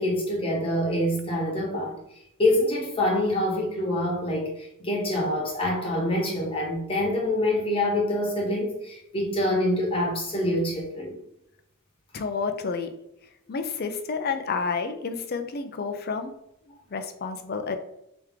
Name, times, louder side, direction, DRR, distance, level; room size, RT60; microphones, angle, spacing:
voice 1, 0.0-2.0 2.4-11.2, left 1 dB, 25° left, 1.1 m, -26 dB
voice 2, 12.1-12.9 13.5-16.3 16.9-17.8, left 5 dB, 45° left, 0.5 m, -30 dB
3.5 x 3.0 x 3.6 m
head